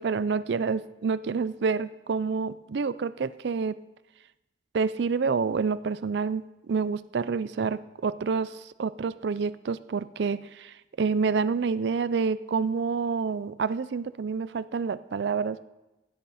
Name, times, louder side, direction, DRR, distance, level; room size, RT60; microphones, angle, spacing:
voice 1, 0.0-3.8 4.7-15.7, right 5 dB, 70° right, 16 dB, 0.4 m, -28 dB
16.5 x 8.2 x 4.1 m, 1.0 s
head